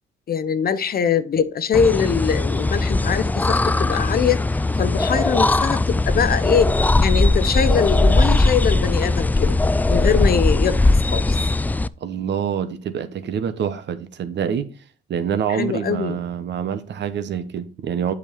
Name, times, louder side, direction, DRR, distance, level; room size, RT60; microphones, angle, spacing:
voice 1, 0.3-4.4 4.8-6.7 7.0-9.6 9.9-11.4 15.5-16.2, left 7 dB, 50° left, 0.8 m, -22 dB
sound 1, 1.7-11.9, left 2 dB, 10° left, 0.3 m, -19 dB
voice 2, 12.0-14.7 15.1-18.1, right 8 dB, 60° right, 1.0 m, -26 dB
8.4 x 5.2 x 4.7 m
cardioid pair, 90°, 20 cm